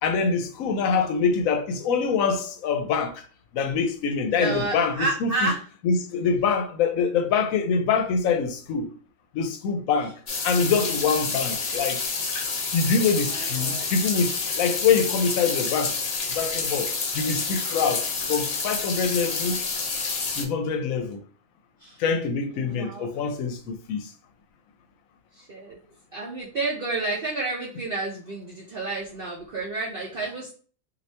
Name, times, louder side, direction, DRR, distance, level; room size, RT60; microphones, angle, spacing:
voice 1, 0.0-3.1 3.5-5.5 5.8-8.9 9.3-10.1 10.4-12.0 12.7-15.9 16.3-19.6 20.3-21.2 22.0-24.1, left 5 dB, 75° left, 0.9 m, -25 dB
voice 2, 0.7-1.1 4.3-5.6 13.1-13.9 21.8-22.0 22.5-23.1 25.3-25.8 26.1-30.5, right 2 dB, 55° right, 0.6 m, -31 dB
sound 1, 10.3-20.4, left 4 dB, 90° left, 0.3 m, -28 dB
2.7 x 2.6 x 3.2 m
omnidirectional pair, 1.5 m